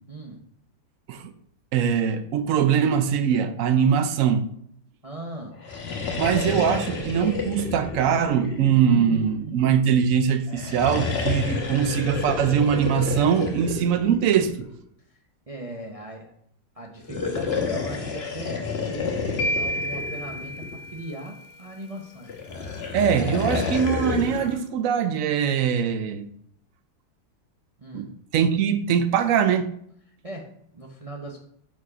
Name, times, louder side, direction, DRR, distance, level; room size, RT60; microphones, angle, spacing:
voice 1, 0.1-0.4 5.0-5.6 15.1-15.2 15.5-16.3 16.7-22.3 27.8-28.1 30.2-31.4, right 1 dB, 60° right, 0.3 m, -38 dB
voice 2, 1.7-4.5 6.2-14.6 22.9-26.3 27.9-29.7, right 8 dB, 75° right, 0.7 m, -22 dB
sound 1, 5.6-9.2 10.5-14.8 17.0-21.0 22.3-24.6, left 4 dB, 40° left, 1.1 m, -30 dB
sound 2, 19.4-21.5, equal, 75° left, 1.3 m, -30 dB
6.1 x 4.7 x 4.9 m
omnidirectional pair, 2.0 m